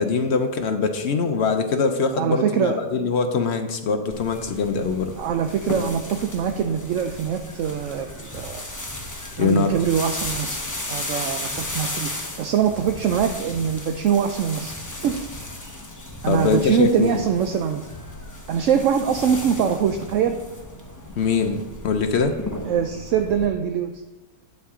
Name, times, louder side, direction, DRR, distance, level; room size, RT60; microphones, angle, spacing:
voice 1, 0.0-5.1 9.3-9.7 16.3-17.2 21.2-21.6 21.8-22.3, left 4 dB, 55° left, 6 dB, 0.8 m, -22 dB
voice 2, 2.1-2.8 5.2-8.7 9.4-12.1 12.4-15.2 16.2-17.8 18.5-20.4 22.7-24.0, right 8 dB, 65° right, 6 dB, 0.9 m, -23 dB
sound 1, 4.1-23.5, left 1 dB, 15° left, 0.8 m, -35 dB
9.0 x 8.5 x 3.7 m, 1.0 s
omnidirectional pair, 1.6 m